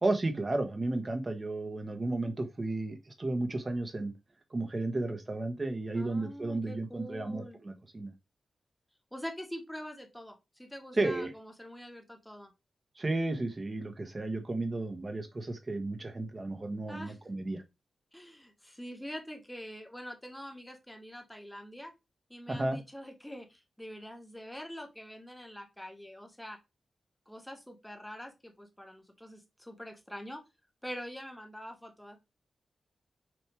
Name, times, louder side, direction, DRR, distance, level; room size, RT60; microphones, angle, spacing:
voice 1, 0.0-4.1 4.5-8.1 10.9-11.3 13.0-17.6 22.5-22.8, right 2 dB, 35° right, 1.4 m, -33 dB
voice 2, 5.9-7.6 9.1-12.5 16.9-17.2 18.1-21.9 22.3-26.6 27.3-30.4 30.8-32.2, equal, 5° left, 1.6 m, -45 dB
6.3 x 3.1 x 4.9 m
cardioid pair, 75°, 0 cm